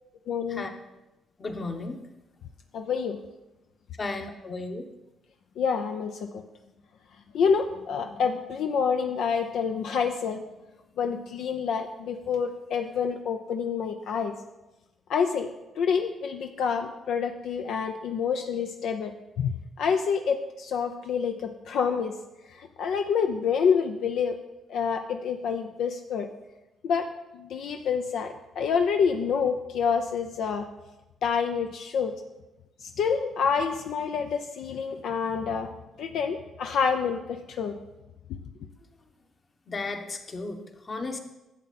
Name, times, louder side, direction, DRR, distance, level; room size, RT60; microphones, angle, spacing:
voice 1, 0.3-0.7 2.7-3.2 5.6-6.4 7.3-10.4 11.0-14.3 15.1-15.5 15.8-19.1 19.4-22.1 22.5-24.4 24.7-26.3 26.8-27.1 27.3-30.7 31.2-32.1 33.0-35.7 36.0-37.8, left 6 dB, 75° left, 5 dB, 0.6 m, -27 dB
voice 2, 1.4-2.0 4.0-4.9 39.7-41.2, left 3 dB, 35° left, 5 dB, 1.2 m, -34 dB
11.0 x 7.5 x 4.2 m, 1.0 s
cardioid pair, 90°, 0 cm